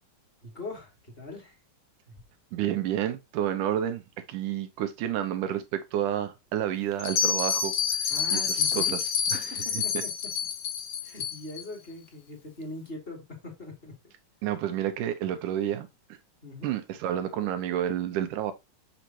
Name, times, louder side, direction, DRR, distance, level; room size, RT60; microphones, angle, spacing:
voice 1, 0.4-1.6 8.1-9.0 9.5-10.1 11.0-13.9 16.4-16.7, left 2 dB, 20° left, 2.4 m, -41 dB
voice 2, 2.5-9.0 9.3-9.4 9.7-9.8 14.4-16.2 16.6-18.5, right 11 dB, 80° right, 2.4 m, -30 dB
Bell, 7.0-11.6, left 7 dB, 60° left, 1.8 m, -28 dB
6.5 x 6.5 x 2.9 m
omnidirectional pair, 3.7 m